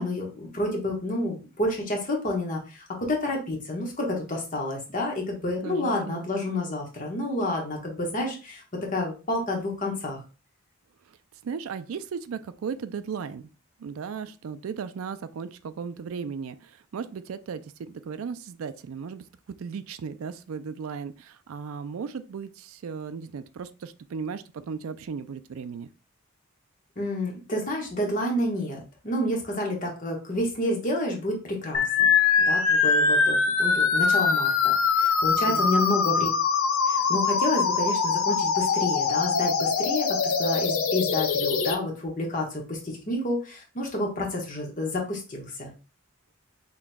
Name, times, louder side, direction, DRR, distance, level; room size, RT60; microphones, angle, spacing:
voice 1, 0.0-8.6 8.9-10.2 27.0-32.1 32.4-36.3 36.9-45.7, left 1 dB, 40° left, 1.2 m, -29 dB
voice 2, 5.6-6.3 11.4-13.5 13.8-25.9 35.5-35.7, right 6 dB, 90° right, 0.4 m, -36 dB
sound 1, 31.7-41.7, left 5 dB, 85° left, 0.6 m, -23 dB
5.9 x 3.0 x 2.2 m
head